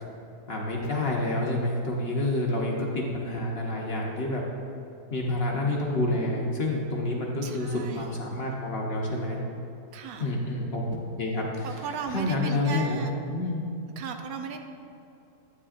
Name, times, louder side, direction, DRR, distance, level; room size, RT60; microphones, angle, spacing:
voice 1, 0.5-4.4 5.1-9.4 10.2-13.6, left 2 dB, 50° left, -2 dB, 0.9 m, -28 dB
voice 2, 7.4-8.1 9.9-10.3 11.6-13.1 14.0-14.6, right 6 dB, 75° right, 5 dB, 1.1 m, -36 dB
9.3 x 8.5 x 2.5 m, 2.7 s
omnidirectional pair, 1.7 m